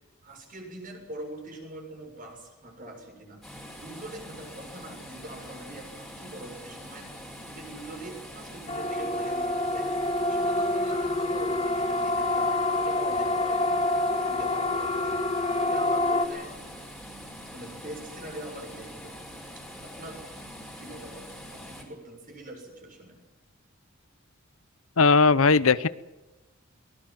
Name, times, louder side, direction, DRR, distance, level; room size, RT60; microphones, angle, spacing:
voice 1, 0.2-3.4 3.8-7.1 7.5-13.6 14.3-15.2 15.6-16.5 17.5-19.1 19.8-20.2 20.8-21.2 21.5-23.2, right 1 dB, 40° right, 2 dB, 7.2 m, -43 dB
sound 1, 3.4-21.8, equal, ahead, 5.2 m, -44 dB
Siren, 8.7-16.3, left 2 dB, 25° left, 2.3 m, -27 dB
voice 2, 25.0-25.9, left 4 dB, 80° left, 17 dB, 0.8 m, -18 dB
23.0 x 19.5 x 7.8 m, 1.1 s
head